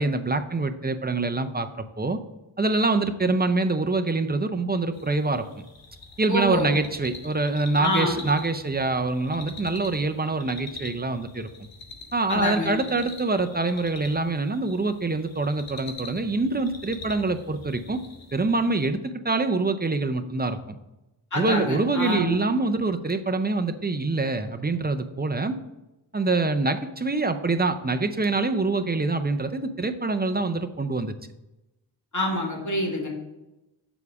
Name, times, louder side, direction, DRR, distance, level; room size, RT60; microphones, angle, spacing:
voice 1, 0.0-2.2 2.6-5.5 6.2-11.5 12.1-18.0 18.3-20.8 21.4-25.6 26.1-31.1, right 3 dB, 20° right, 8 dB, 0.5 m, -25 dB
sound 1, 4.9-18.9, left 3 dB, 70° left, 1.4 m, -45 dB
voice 2, 6.3-6.8 7.8-8.2 12.3-12.8 21.3-22.4 32.1-33.1, left 1 dB, 40° left, 0 dB, 1.9 m, -26 dB
7.1 x 4.8 x 6.9 m, 0.96 s
wide cardioid pair, 110°, 47 cm